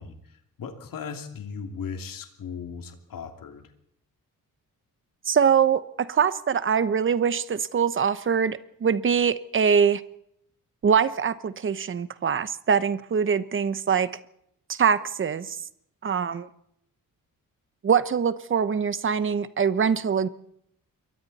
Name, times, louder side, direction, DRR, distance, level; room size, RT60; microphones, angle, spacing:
voice 1, 0.0-3.7, left 6 dB, 75° left, 5 dB, 2.9 m, -37 dB
voice 2, 5.3-10.0 10.8-14.1 14.7-15.6 16.0-16.5 17.8-20.3, right 7 dB, 35° right, 14 dB, 1.0 m, -23 dB
27.5 x 23.0 x 4.2 m, 0.72 s
wide cardioid pair, 165°, 34 cm